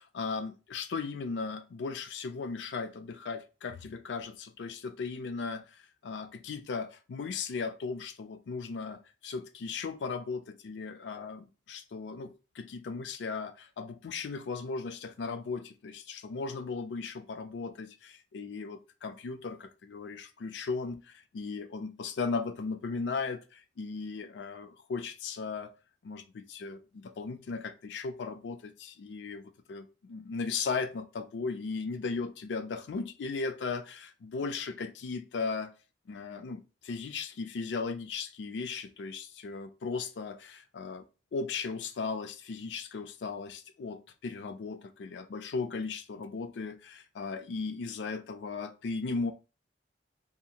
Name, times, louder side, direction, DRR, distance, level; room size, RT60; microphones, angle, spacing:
voice 1, 0.0-5.7 6.0-21.0 21.3-25.7 26.0-35.7 36.1-41.0 41.3-49.3, left 4 dB, 80° left, 0.4 m, -37 dB
2.7 x 2.4 x 2.7 m
head